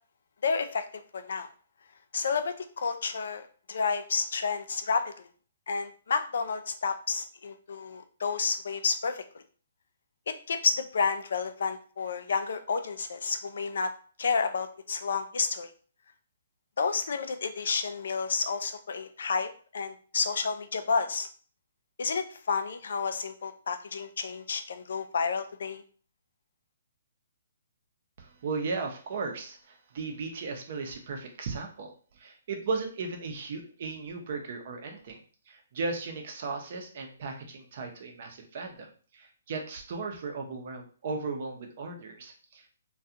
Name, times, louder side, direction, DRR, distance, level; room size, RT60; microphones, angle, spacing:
voice 1, 0.4-0.9 1.1-1.5 2.1-5.1 5.7-9.4 10.3-13.9 14.2-15.7 16.8-21.3 22.0-25.8, left 5 dB, 70° left, 9 dB, 0.4 m, -30 dB
voice 2, 28.2-35.2 35.5-42.7, right 4 dB, 50° right, 3 dB, 0.7 m, -36 dB
2.3 x 2.3 x 2.7 m, 0.43 s
hypercardioid pair, 140°, 0 cm